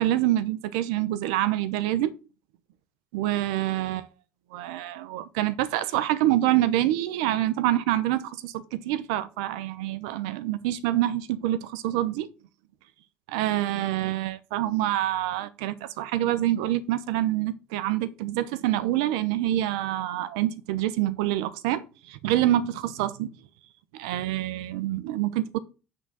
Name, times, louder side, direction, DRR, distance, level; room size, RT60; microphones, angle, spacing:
voice 1, 0.0-2.1 3.1-4.1 4.5-12.3 13.3-23.3 23.9-25.6, right 14 dB, 90° right, 0.8 m, -26 dB
7.9 x 3.9 x 6.2 m
supercardioid pair, 95°, 3 cm